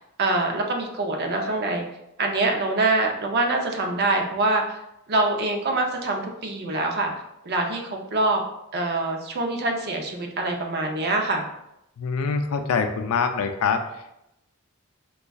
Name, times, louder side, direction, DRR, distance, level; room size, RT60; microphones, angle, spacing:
voice 1, 0.2-1.9 2.2-4.8 5.1-7.1 7.4-8.4 8.7-11.4, right 2 dB, 50° right, 2 dB, 0.5 m, -24 dB
voice 2, 12.0-13.8, left 5 dB, 90° left, 6 dB, 0.4 m, -24 dB
5.1 x 2.3 x 2.3 m, 0.84 s
head